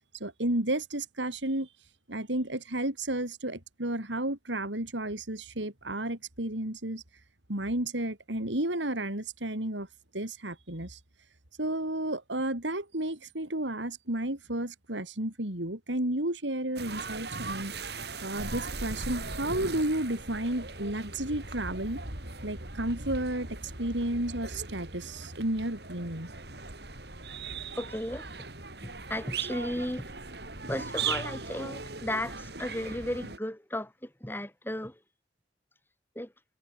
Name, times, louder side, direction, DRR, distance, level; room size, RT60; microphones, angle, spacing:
voice 1, 0.2-1.7 2.1-7.0 7.5-9.9 10.1-11.0 11.6-17.7 18.2-22.0 22.4-26.3, right 1 dB, 85° right, 5.1 m, -32 dB
sound 1, 16.8-33.4, right 4 dB, 60° right, 5.6 m, -39 dB
voice 2, 27.7-28.5 28.8-30.0 30.7-35.0 36.1-36.3, left 1 dB, 10° left, 3.2 m, -35 dB
head